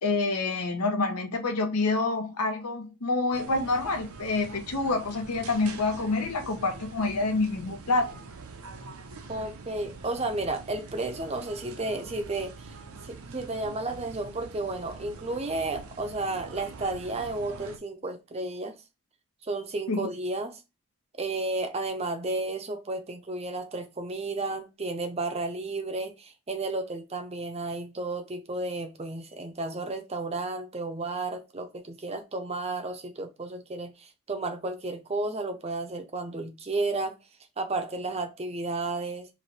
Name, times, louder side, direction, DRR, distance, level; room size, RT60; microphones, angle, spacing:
voice 1, 0.0-8.2 19.9-20.1, left 3 dB, 85° left, 0.8 m, -27 dB
sound 1, 3.3-17.8, right 4 dB, 80° right, 0.6 m, -44 dB
voice 2, 9.3-12.8 13.0-18.8 19.4-20.6 21.2-37.2 37.6-39.3, right 2 dB, 25° right, 0.5 m, -32 dB
3.2 x 2.6 x 4.0 m
head